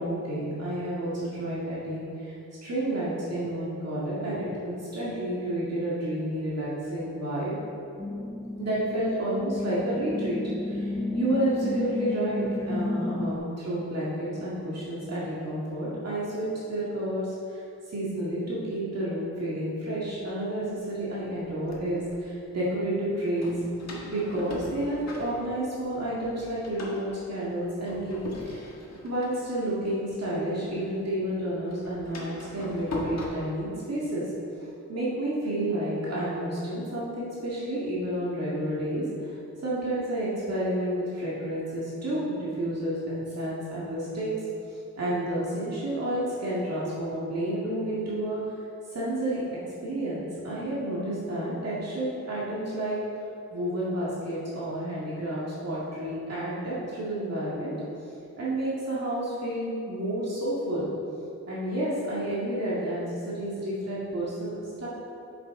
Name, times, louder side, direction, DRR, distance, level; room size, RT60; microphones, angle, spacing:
voice 1, 0.0-2.3 2.6-7.5 8.6-23.5 24.1-28.7 29.0-34.3 34.6-44.3 45.0-48.4 48.9-49.4 49.8-53.0 53.5-57.7 58.4-60.9 61.5-64.9, right 1 dB, 55° right, -8 dB, 1.9 m, -30 dB
sound 1, 8.0-13.4, left 2 dB, 10° left, 0.4 m, -32 dB
Door, 20.2-20.3 21.1-22.2 23.4-26.0 26.2-30.8 31.0-33.3, left 2 dB, 60° left, 1.5 m, -40 dB
8.6 x 6.9 x 3.7 m, 2.7 s
wide cardioid pair, 125°, 30 cm